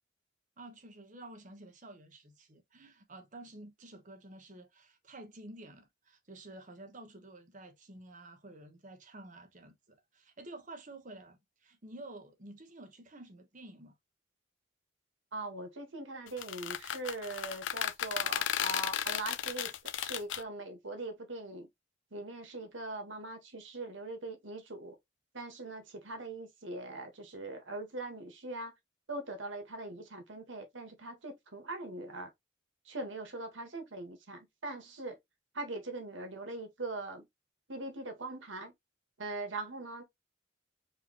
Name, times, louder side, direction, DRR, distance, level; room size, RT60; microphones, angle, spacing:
voice 1, 0.6-13.9, right 2 dB, 45° right, 1.1 m, -51 dB
voice 2, 15.3-21.7 22.1-25.0 25.3-28.7 29.1-32.3 32.8-35.2 35.5-37.3 37.7-38.7 39.2-40.0, right 2 dB, 85° right, 1.5 m, -41 dB
sound 1, 16.3-20.4, left 10 dB, 75° left, 0.5 m, -34 dB
4.8 x 2.9 x 3.0 m
head